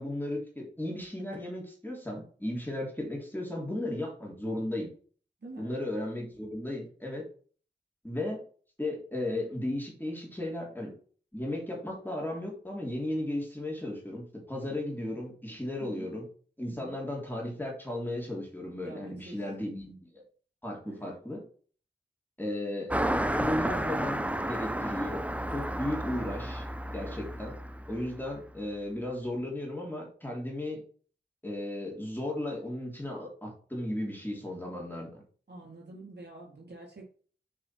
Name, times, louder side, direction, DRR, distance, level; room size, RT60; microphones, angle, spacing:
voice 1, 0.0-4.9 5.6-7.2 8.0-8.4 8.8-10.9 11.3-16.3 16.6-20.1 20.6-21.4 22.4-22.9 23.2-25.2 25.5-26.7 26.9-27.5 27.9-30.8 31.4-35.2, left 1 dB, 10° left, -2 dB, 3.3 m, -35 dB
voice 2, 5.4-5.8 15.8-16.1 16.7-17.0 18.8-19.4 20.9-21.1 35.5-37.0, right 2 dB, 75° right, -2 dB, 3.6 m, -47 dB
Car passing by, 22.9-28.7, right 1 dB, 10° right, 0.6 m, -32 dB
7.5 x 4.8 x 4.5 m, 0.43 s
wide cardioid pair, 55°, 17 cm